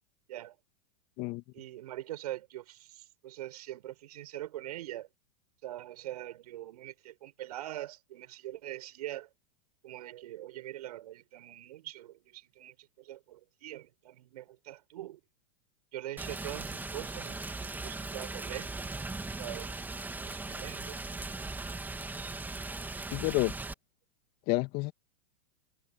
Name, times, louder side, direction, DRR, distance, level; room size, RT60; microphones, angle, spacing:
voice 1, 1.5-5.1 5.6-9.3 9.8-15.2 15.9-18.9 19.4-19.8 20.2-21.1, right 14 dB, 70° right, 5.6 m, -43 dB
Rain, 16.2-23.7, right 3 dB, 10° right, 2.8 m, -39 dB
voice 2, 23.1-23.5 24.5-24.9, left 22 dB, 45° left, 2.5 m, -29 dB
hypercardioid pair, 115°, 21 cm